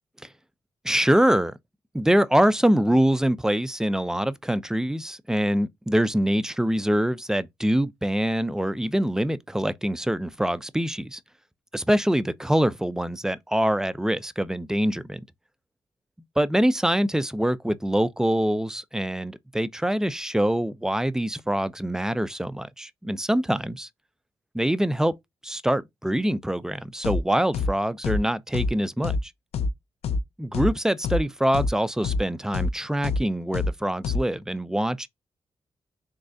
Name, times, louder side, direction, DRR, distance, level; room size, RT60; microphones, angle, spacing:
voice 1, 0.8-1.5 1.9-11.2 11.7-15.2 16.4-23.9 24.5-25.1 25.4-29.3 30.4-35.1, right 1 dB, 5° right, 0.4 m, -24 dB
sound 1, 27.0-27.2 27.5-27.7 28.0-28.2 28.5-28.7 29.0-29.2 29.5-29.7 30.0-30.2 30.5-30.7 31.0-31.2 31.5-31.7 32.0-32.2 32.5-32.7 33.0-33.2 33.5-33.7 34.0-34.2, left 4 dB, 90° left, 0.4 m, -25 dB
3.6 x 3.1 x 2.6 m
cardioid pair, 65°, 10 cm